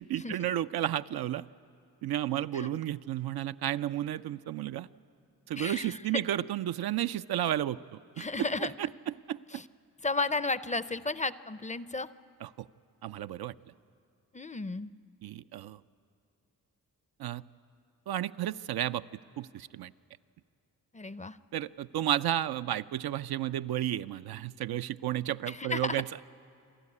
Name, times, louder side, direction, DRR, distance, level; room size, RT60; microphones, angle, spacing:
voice 1, 0.0-1.5 2.0-4.9 5.5-9.4 12.4-12.7 13.0-13.5 15.2-15.8 17.2-17.4 18.1-19.0 19.4-19.9 21.5-26.2, right 12 dB, 75° right, 11 dB, 0.5 m, -32 dB
voice 2, 5.6-6.0 8.2-8.7 9.5-9.6 10.0-12.1 14.3-14.9 20.9-21.4 25.5-26.0, left 3 dB, 20° left, 15 dB, 0.5 m, -33 dB
27.0 x 12.5 x 9.7 m, 2.5 s
cardioid pair, 60°, 38 cm